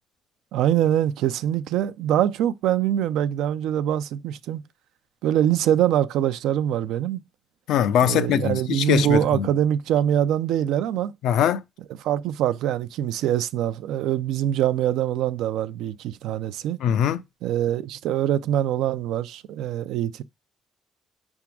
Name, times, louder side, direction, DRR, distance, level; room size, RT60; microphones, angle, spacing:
voice 1, 0.5-4.6 5.2-7.2 8.1-11.1 12.0-16.8 17.4-20.2, right 11 dB, 90° right, 0.5 m, -24 dB
voice 2, 7.7-9.5 11.2-11.6 16.8-17.2, left 10 dB, 85° left, 0.5 m, -22 dB
6.0 x 3.6 x 5.9 m
cardioid pair, 90°, 0 cm